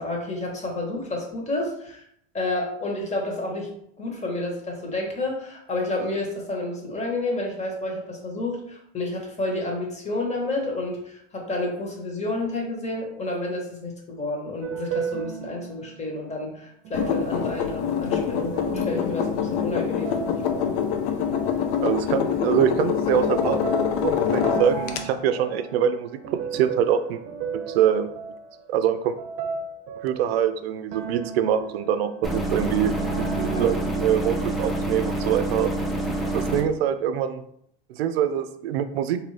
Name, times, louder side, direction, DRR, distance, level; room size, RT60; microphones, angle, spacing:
voice 1, 0.0-2.0 2.3-3.7 4.0-20.7 33.5-33.7, left 2 dB, 25° left, 0 dB, 1.3 m, -30 dB
sound 1, 14.6-16.0 16.8-22.6 23.1-30.5 30.9-34.1, right 5 dB, 50° right, 0.7 m, -35 dB
sound 2, 16.9-25.0, left 8 dB, 60° left, 0.6 m, -25 dB
voice 2, 21.8-23.6 24.0-26.2 26.5-27.2 27.7-28.1 28.7-29.2 30.0-32.9 33.4-35.7 36.1-37.4 37.9-39.2, right 9 dB, 85° right, 10 dB, 0.5 m, -24 dB
sound 3, 32.2-36.6, right 1 dB, ahead, 0.7 m, -27 dB
3.7 x 2.7 x 3.2 m, 0.70 s
supercardioid pair, 100°, 30 cm